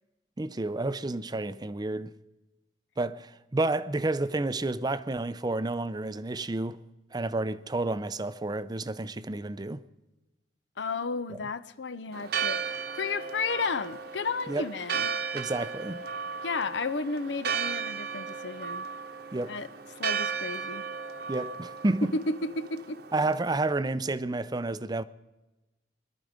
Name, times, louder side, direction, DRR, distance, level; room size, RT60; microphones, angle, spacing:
voice 1, 0.4-2.1 3.0-6.8 7.1-9.8 14.5-14.7 15.3-16.0 19.3-19.5 21.3-22.1 23.1-25.0, right 2 dB, 20° right, 0.5 m, -30 dB
voice 2, 10.8-15.1 16.4-18.8 19.5-19.7 20.0-20.8 22.0-23.0, left 3 dB, 75° left, 0.7 m, -32 dB
Church bell, 12.1-23.7, right 6 dB, 60° right, 1.1 m, -35 dB
21.5 x 12.5 x 5.1 m
head